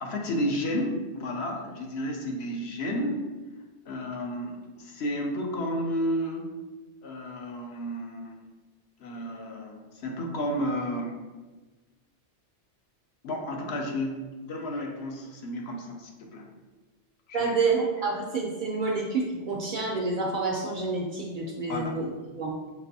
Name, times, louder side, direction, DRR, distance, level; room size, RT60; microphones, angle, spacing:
voice 1, 0.0-3.3 3.9-6.5 7.0-8.4 9.0-11.2 13.2-16.5 17.3-17.5 21.7-21.9, equal, 70° left, 1 dB, 0.9 m, -32 dB
voice 2, 17.3-22.1 22.4-22.5, right 3 dB, 55° right, -1 dB, 0.6 m, -28 dB
5.9 x 2.5 x 2.6 m, 1.3 s
omnidirectional pair, 1.2 m